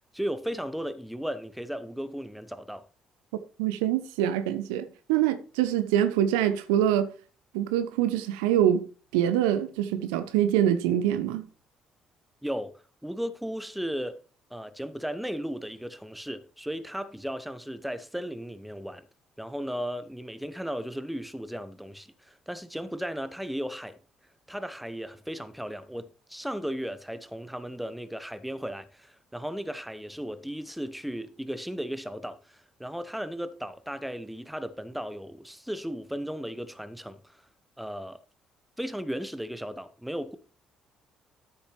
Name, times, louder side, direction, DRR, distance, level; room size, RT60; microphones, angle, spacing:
voice 1, 0.1-2.8 12.4-14.2 14.5-19.1 19.4-24.0 24.5-37.4 37.8-38.2 38.8-40.4, equal, ahead, 1.0 m, -35 dB
voice 2, 3.6-7.1 7.5-8.9 9.1-11.4, right 11 dB, 70° right, 0.7 m, -25 dB
13.0 x 7.1 x 3.3 m
figure-of-eight pair, 45°, 3 cm